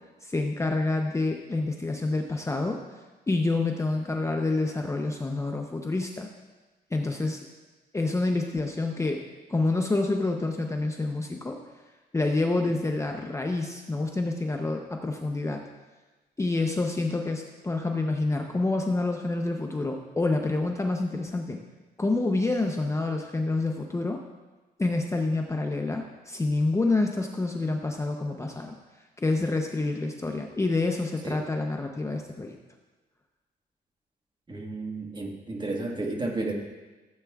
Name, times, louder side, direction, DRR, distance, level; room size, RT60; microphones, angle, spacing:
voice 1, 0.2-2.8 3.3-6.3 6.9-7.5 7.9-9.2 9.5-11.6 12.1-15.6 16.4-21.6 22.0-24.2 24.8-28.7 29.2-32.6, left 2 dB, 15° left, 3 dB, 0.7 m, -27 dB
voice 2, 34.5-36.5, right 2 dB, 30° right, 1 dB, 1.6 m, -32 dB
15.0 x 8.0 x 2.3 m, 1.2 s
cardioid pair, 95°, 17 cm